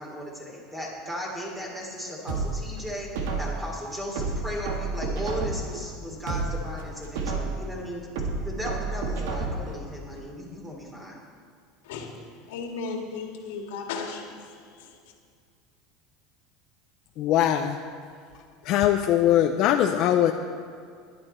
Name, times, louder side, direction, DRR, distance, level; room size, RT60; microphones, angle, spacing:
voice 1, 0.0-3.1 3.4-8.1 8.4-11.2, equal, 10° right, -2 dB, 3.1 m, -36 dB
sound 1, 2.3-3.7 4.2-5.8 6.2-7.7 8.2-9.8 10.2-10.3, right 3 dB, 80° right, 1.7 m, -30 dB
voice 2, 11.8-15.0, left 4 dB, 90° left, 2 dB, 2.0 m, -36 dB
voice 3, 17.2-17.8 18.6-20.3, left 11 dB, 55° left, 5 dB, 0.6 m, -21 dB
14.0 x 11.0 x 4.4 m, 2.2 s
supercardioid pair, 130°, 0 cm